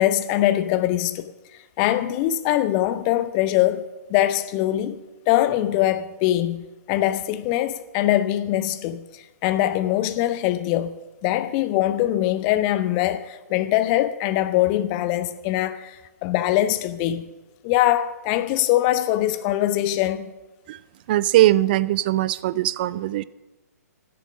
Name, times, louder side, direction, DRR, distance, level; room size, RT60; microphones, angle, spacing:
voice 1, 0.0-1.3 1.8-5.0 5.3-17.2 17.6-20.2, left 13 dB, 25° left, 0.7 m, -22 dB
voice 2, 21.1-23.2, right 14 dB, 35° right, 0.4 m, -20 dB
12.5 x 10.5 x 6.2 m
figure-of-eight pair, 125°, 9 cm